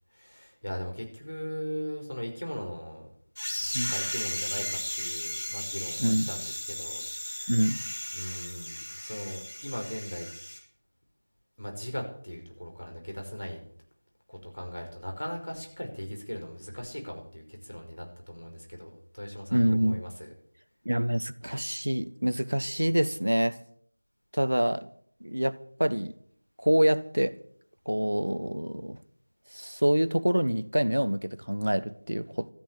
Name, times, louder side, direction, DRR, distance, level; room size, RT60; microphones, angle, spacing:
voice 1, 0.1-3.1 3.6-10.3 11.6-13.6 14.3-20.3, equal, 85° left, 5.5 m, -39 dB
sound 1, 3.4-10.6, left 1 dB, 45° left, 3.9 m, -36 dB
voice 2, 6.0-6.3 7.5-7.8 19.5-20.0 20.8-23.6 24.3-24.9 25.2-25.5 25.8-26.2 26.6-27.3 27.9-29.0 29.5-32.5, equal, 90° right, 1.1 m, -26 dB
13.5 x 10.5 x 7.6 m
figure-of-eight pair, 175°, 0 cm